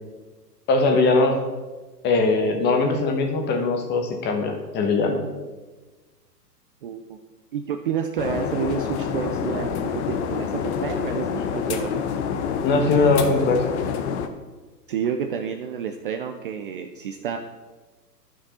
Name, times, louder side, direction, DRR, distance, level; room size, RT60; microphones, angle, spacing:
voice 1, 0.7-1.4 2.0-5.2 12.6-13.6, left 3 dB, 20° left, 4 dB, 1.1 m, -20 dB
voice 2, 6.8-7.2 7.5-12.0 14.9-17.4, right 7 dB, 35° right, 6 dB, 0.5 m, -29 dB
sound 1, 8.2-14.3, left 7 dB, 40° left, 0.9 m, -27 dB
11.0 x 6.2 x 4.1 m, 1.2 s
hypercardioid pair, 120°, 49 cm